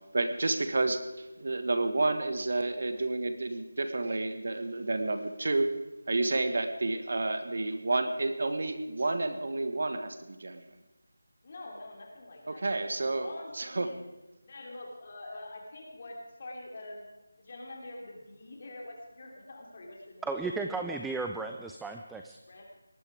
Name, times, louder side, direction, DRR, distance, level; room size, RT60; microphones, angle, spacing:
voice 1, 0.1-10.6 12.5-13.3 13.5-13.9, right 2 dB, 55° right, 9 dB, 1.4 m, -30 dB
voice 2, 11.4-12.7 13.0-14.0 14.4-17.1 17.4-20.7 22.5-22.7, left 2 dB, 35° left, 0 dB, 3.3 m, -45 dB
voice 3, 20.2-22.4, right 3 dB, 5° right, 4 dB, 0.4 m, -34 dB
18.5 x 12.0 x 4.9 m, 1.0 s
figure-of-eight pair, 170°, 0 cm